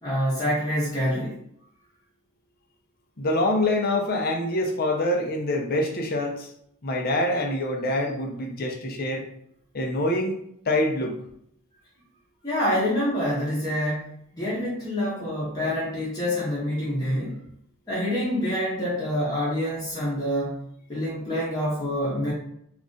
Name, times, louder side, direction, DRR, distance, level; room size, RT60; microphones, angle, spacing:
voice 1, 0.0-1.4 12.4-17.4 17.9-20.6 20.9-22.3, equal, 20° left, -8 dB, 0.9 m, -26 dB
voice 2, 3.2-6.5 6.8-9.2 9.7-10.4 10.7-11.2, left 1 dB, 45° left, 1 dB, 0.6 m, -25 dB
3.0 x 2.5 x 3.8 m, 0.70 s
head